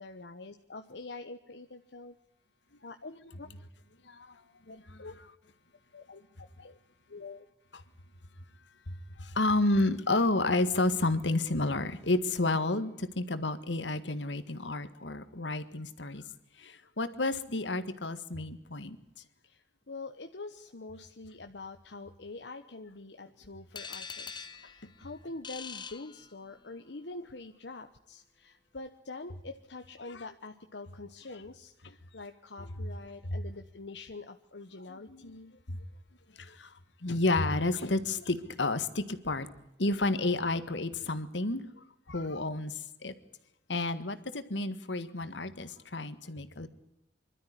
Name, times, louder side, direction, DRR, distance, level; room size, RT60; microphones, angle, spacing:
voice 1, 0.0-2.2 2.8-3.1 3.4-3.5 4.7-5.1 5.9-6.2 6.6-6.8 7.1-7.5 19.4-35.5, left 3 dB, 70° left, 6 dB, 1.1 m, -45 dB
voice 2, 4.0-4.4 4.7-5.0 6.6-6.7 8.9-16.2 16.6-19.0 30.1-30.3 31.8-31.9 32.6-32.7 33.3-33.4 34.9-35.4 35.7-35.8 36.4-39.5 39.8-43.1 43.7-46.7, left 2 dB, 85° left, 11 dB, 1.8 m, -31 dB
sound 1, 23.7-26.8, left 5 dB, 25° left, 1.1 m, -44 dB
25.5 x 13.0 x 9.9 m, 0.89 s
head